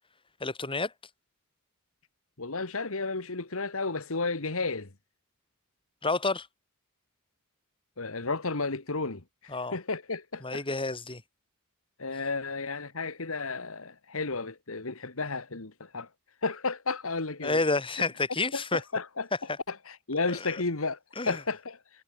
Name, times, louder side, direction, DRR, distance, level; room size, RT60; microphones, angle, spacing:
voice 1, 0.4-0.9 6.0-6.5 9.5-9.7 10.4-11.2 17.4-18.8 20.3-20.6 21.2-21.4, left 3 dB, 25° left, 4.9 m, -29 dB
voice 2, 2.4-4.9 8.0-10.6 12.0-16.1 16.4-17.6 18.5-19.3 19.7-21.0 21.3-21.8, left 3 dB, 70° left, 1.9 m, -32 dB
head